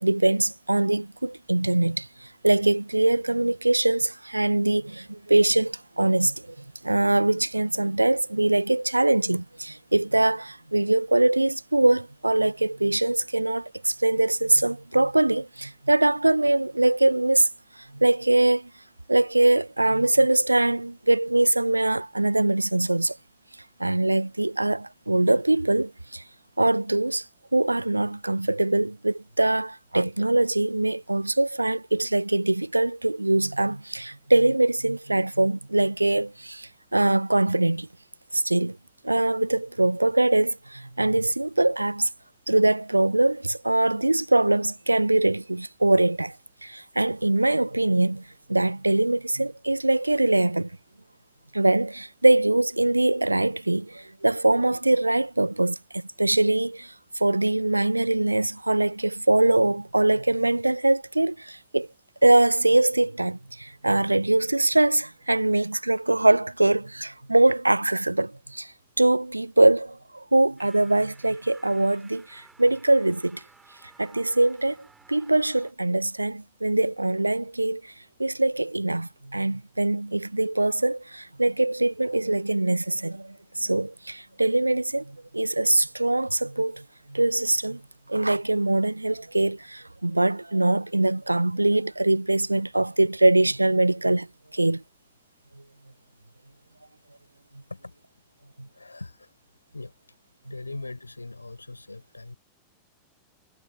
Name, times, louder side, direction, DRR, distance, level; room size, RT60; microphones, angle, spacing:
voice 1, 0.0-2.1 2.4-6.3 6.8-17.5 17.9-18.7 19.1-23.1 23.8-26.2 26.6-27.2 27.5-37.9 38.3-38.8 39.0-42.1 42.5-46.3 46.6-48.2 48.5-50.7 51.5-56.9 57.2-61.9 62.2-68.7 69.0-73.4 74.0-74.8 75.1-77.8 78.2-85.0 85.3-86.8 87.1-87.8 88.1-94.3 94.5-94.8, right 2 dB, 85° right, 0.5 m, -22 dB
sound 1, 70.6-75.7, right 4 dB, 10° right, 4.4 m, -55 dB
voice 2, 98.7-99.3 99.7-100.0 100.4-102.4, left 2 dB, 80° left, 5.8 m, -40 dB
figure-of-eight pair, 90°, 0 cm